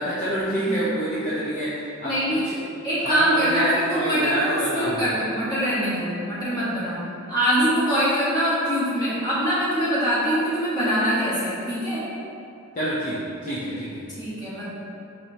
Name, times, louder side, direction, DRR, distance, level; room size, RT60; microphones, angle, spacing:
voice 1, 0.0-1.7 2.0-2.5 3.0-5.1 12.8-14.0, equal, 40° left, -9 dB, 0.5 m, -27 dB
voice 2, 0.5-0.9 2.0-2.4 2.8-7.0 7.3-12.0 14.2-14.7, equal, 20° left, -11 dB, 1.3 m, -23 dB
4.6 x 2.9 x 2.8 m, 2.6 s
head